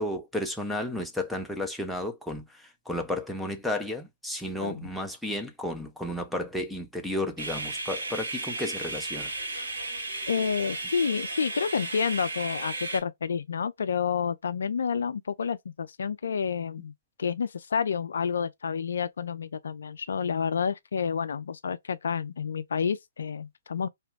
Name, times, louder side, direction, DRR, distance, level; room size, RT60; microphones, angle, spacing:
voice 1, 0.0-9.3, left 1 dB, ahead, 0.5 m, -33 dB
sound 1, 7.4-13.0, right 2 dB, 75° right, 1.3 m, -34 dB
voice 2, 10.3-16.9 17.2-23.9, left 6 dB, 65° left, 0.3 m, -29 dB
2.8 x 2.2 x 3.3 m
figure-of-eight pair, 125°, 0 cm